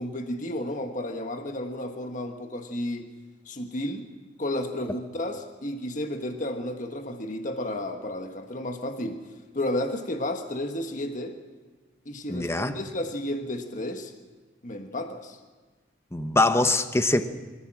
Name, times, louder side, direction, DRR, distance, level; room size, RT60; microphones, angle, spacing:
voice 1, 0.0-3.1 3.5-4.0 4.4-9.2 9.5-11.4 12.0-14.1 14.6-15.4, left 1 dB, 45° left, 5 dB, 1.4 m, -32 dB
voice 2, 12.3-12.8 16.1-17.3, left 2 dB, 15° left, 9 dB, 0.9 m, -23 dB
25.0 x 15.0 x 7.5 m, 1.3 s
head